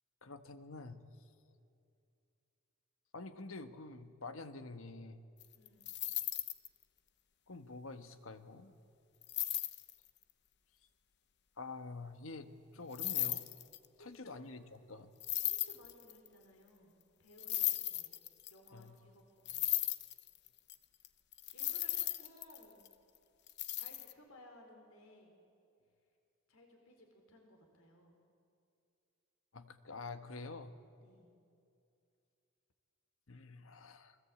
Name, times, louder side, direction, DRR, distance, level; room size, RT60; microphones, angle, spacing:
voice 1, 0.2-1.0 3.1-5.2 7.5-8.7 11.6-13.5 14.0-15.1 18.7-19.0 29.5-30.8 33.3-34.2, left 3 dB, 75° left, 9 dB, 1.4 m, -48 dB
sound 1, 5.4-6.7 9.2-9.9 12.9-13.9 15.2-16.3 17.4-18.7 19.5-20.7 21.0-21.1 21.3-22.9 23.5-24.1, left 14 dB, 55° left, 1.0 m, -36 dB
voice 2, 5.5-5.9 13.9-14.5 15.5-18.1 18.5-19.7 21.5-22.8 23.7-25.4 26.5-28.2 31.0-31.3, left 1 dB, 90° left, 3 dB, 4.2 m, -60 dB
28.5 x 21.5 x 8.5 m, 2.5 s
head